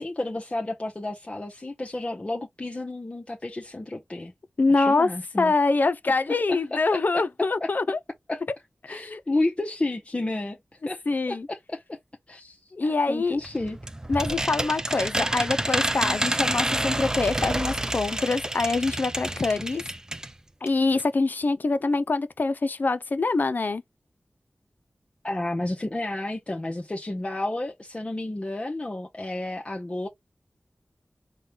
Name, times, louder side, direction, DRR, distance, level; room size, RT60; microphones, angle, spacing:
voice 1, 0.0-4.3 4.7-5.5 6.3-7.2 7.6-7.7 8.3-8.4 8.9-10.6 10.9-12.0 12.3-13.8 25.2-30.1, left 2 dB, 35° left, 0.8 m, -31 dB
voice 2, 4.6-5.1 5.4-8.0 8.9-9.2 11.1-11.5 12.7-13.4 14.1-19.8 20.6-23.8, left 3 dB, 65° left, 0.4 m, -24 dB
sound 1, 13.4-20.3 20.7-20.8 21.0-21.1, right 1 dB, 20° right, 0.4 m, -28 dB
4.2 x 2.2 x 3.3 m
wide cardioid pair, 50°, 3 cm